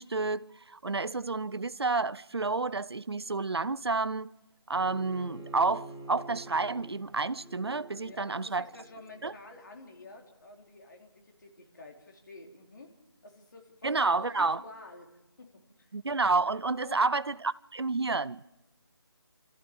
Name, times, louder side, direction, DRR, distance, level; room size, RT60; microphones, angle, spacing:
voice 1, 0.0-4.3 4.7-8.6 9.2-9.3 13.8-14.6 15.9-18.6, right 3 dB, 70° right, 0.7 m, -30 dB
Bowed string instrument, 4.7-9.8, right 2 dB, ahead, 3.8 m, -48 dB
voice 2, 8.0-12.9 13.2-15.9 16.8-17.0, left 3 dB, 45° left, 3.9 m, -50 dB
28.5 x 14.5 x 7.0 m
figure-of-eight pair, 160°, 14 cm